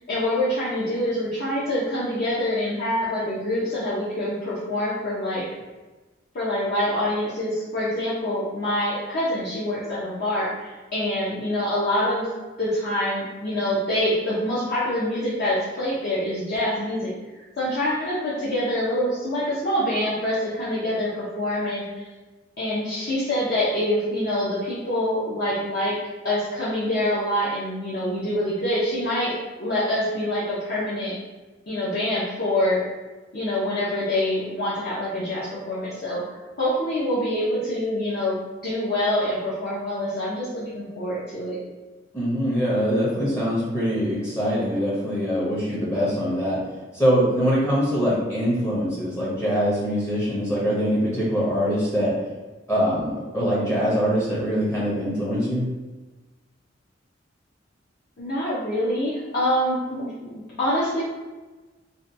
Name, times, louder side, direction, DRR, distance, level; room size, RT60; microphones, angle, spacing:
voice 1, 0.1-5.5 6.3-12.3 12.6-17.1 17.6-22.0 22.6-26.0 26.2-31.2 31.7-32.8 33.3-36.2 36.6-41.6 58.2-61.0, left 1 dB, 55° left, -9 dB, 0.6 m, -25 dB
voice 2, 42.1-46.6 46.9-52.1 52.7-55.6, equal, 15° left, -7 dB, 0.6 m, -23 dB
2.7 x 2.2 x 2.5 m, 1.2 s
head